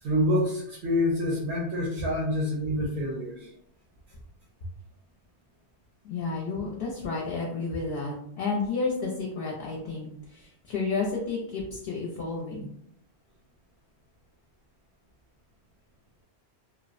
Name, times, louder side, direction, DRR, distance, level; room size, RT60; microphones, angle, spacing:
voice 1, 0.0-3.5, left 1 dB, 80° right, -3 dB, 0.9 m, -27 dB
voice 2, 6.0-12.7, left 4 dB, 65° left, -2 dB, 0.7 m, -31 dB
2.8 x 2.0 x 2.4 m, 0.71 s
omnidirectional pair, 1.1 m